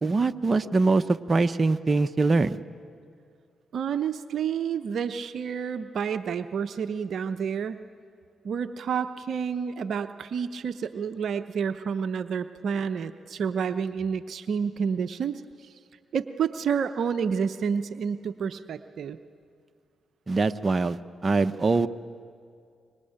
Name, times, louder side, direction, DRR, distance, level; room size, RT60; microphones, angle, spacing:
voice 1, 0.0-2.6 20.3-21.0 21.2-21.9, right 3 dB, 40° right, 10 dB, 1.0 m, -23 dB
voice 2, 3.7-7.8 8.4-15.4 16.1-19.2, right 7 dB, 65° right, 10 dB, 0.8 m, -29 dB
25.5 x 24.0 x 8.8 m, 2.3 s
hypercardioid pair, 40°, 0 cm